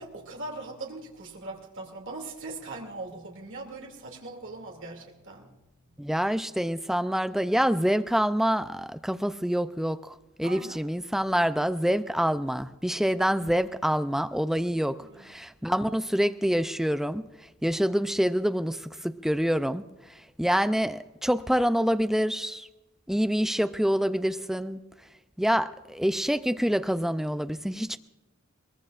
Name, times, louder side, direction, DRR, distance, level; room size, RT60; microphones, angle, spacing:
voice 1, 0.0-5.5 10.4-10.8 15.0-15.3, right 2 dB, 60° right, 0 dB, 2.5 m, -40 dB
voice 2, 6.0-17.2 17.6-19.8 20.4-22.7 23.1-24.8 25.4-28.0, equal, ahead, 11 dB, 0.4 m, -26 dB
22.5 x 20.5 x 2.5 m, 1.1 s
head